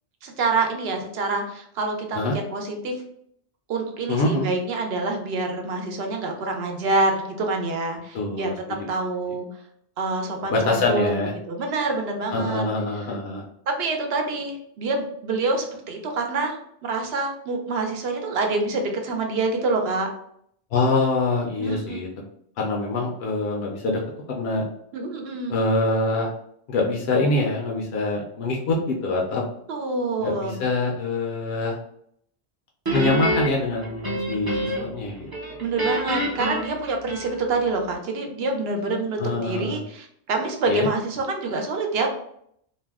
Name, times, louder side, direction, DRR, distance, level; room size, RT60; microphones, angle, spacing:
voice 1, 0.2-3.0 3.7-8.5 8.9-9.5 10.0-12.6 13.7-20.1 21.6-22.0 24.9-25.5 29.7-30.6 35.6-42.1, right 3 dB, 65° right, 3 dB, 0.8 m, -26 dB
voice 2, 4.1-4.5 8.1-8.9 10.5-11.3 12.3-13.4 20.7-22.1 22.6-24.0 24.3-24.6 25.5-26.3 26.7-29.4 30.2-31.8 32.9-35.3 39.2-39.8 40.7-40.9, left 2 dB, 70° left, -1 dB, 0.8 m, -24 dB
Guitar, 32.8-35.0 35.3-37.6, equal, 25° right, 0.5 m, -27 dB
2.7 x 2.1 x 3.4 m, 0.69 s
omnidirectional pair, 1.1 m